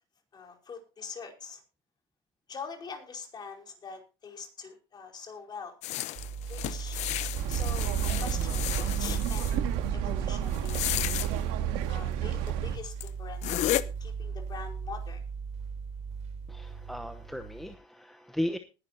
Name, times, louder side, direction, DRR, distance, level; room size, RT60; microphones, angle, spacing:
voice 1, 0.3-1.6 2.5-5.8 6.5-7.0 7.5-7.9 8.2-11.1 11.9-15.2, left 5 dB, 30° left, 2 dB, 4.8 m, -44 dB
sound 1, 5.8-9.6 10.5-11.3 12.5-12.6 13.0-13.1 13.4-13.8, left 15 dB, 55° left, 0.9 m, -33 dB
sound 2, 6.2-17.7, right 5 dB, 55° right, 3.4 m, -37 dB
sound 3, 7.3-12.8, right 10 dB, 75° right, 2.0 m, -31 dB
voice 2, 16.5-18.6, left 1 dB, ahead, 7 dB, 1.0 m, -36 dB
19.5 x 11.0 x 2.8 m, 0.32 s
supercardioid pair, 115°, 14 cm